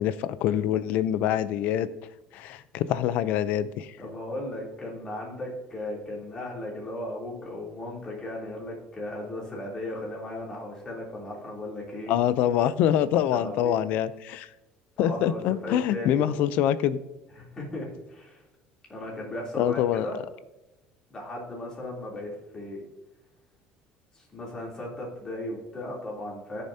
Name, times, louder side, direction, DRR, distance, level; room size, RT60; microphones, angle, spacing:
voice 1, 0.0-1.9 2.3-3.9 12.1-14.5 15.0-17.0 19.6-20.1, left 10 dB, 65° left, 15 dB, 0.5 m, -25 dB
voice 2, 4.0-12.1 13.1-13.8 15.0-16.4 17.3-18.4 18.9-20.2 21.1-22.8 24.1-26.6, left 1 dB, 25° left, -3 dB, 3.3 m, -36 dB
16.5 x 7.0 x 2.8 m, 0.99 s
cardioid pair, 140°, 3 cm